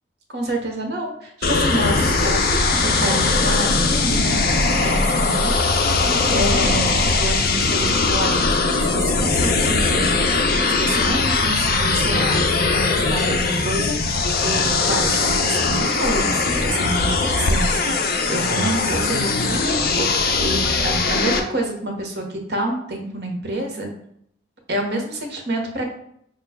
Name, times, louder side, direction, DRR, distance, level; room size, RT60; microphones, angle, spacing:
voice 1, 0.3-5.7 6.3-10.2 10.7-23.9 24.7-25.9, right 1 dB, 60° right, 2 dB, 0.8 m, -28 dB
sound 1, 1.4-21.4, left 3 dB, 50° left, 0.4 m, -20 dB
4.9 x 2.2 x 3.5 m, 0.70 s
head